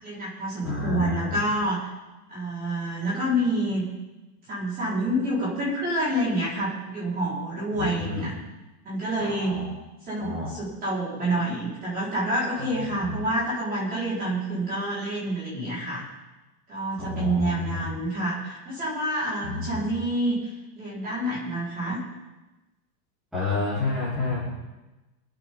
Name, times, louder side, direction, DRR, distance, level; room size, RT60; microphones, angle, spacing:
voice 1, 0.0-1.9 2.3-3.8 4.5-8.3 8.8-9.5 10.1-16.1 16.7-22.0, right 1 dB, 20° right, -7 dB, 5.0 m, -28 dB
voice 2, 0.6-1.4 7.7-8.3 9.2-9.7 10.2-10.5 12.6-13.2 17.0-17.9 19.4-19.9 23.3-24.5, left 3 dB, ahead, -13 dB, 4.2 m, -30 dB
26.5 x 8.9 x 4.0 m, 1.1 s
supercardioid pair, 180°, 47 cm